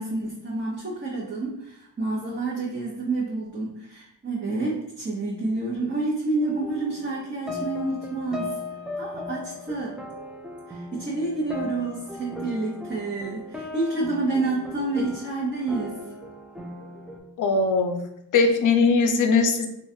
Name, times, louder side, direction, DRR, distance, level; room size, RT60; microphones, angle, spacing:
voice 1, 0.0-8.5 9.0-10.0 10.7-16.0, right 2 dB, 25° right, -6 dB, 0.8 m, -29 dB
sound 1, 6.4-17.2, left 2 dB, ahead, 0.4 m, -37 dB
voice 2, 17.4-18.0 18.3-19.7, left 4 dB, 45° left, 6 dB, 0.5 m, -20 dB
3.0 x 2.4 x 2.6 m, 0.80 s
cardioid pair, 60°, 44 cm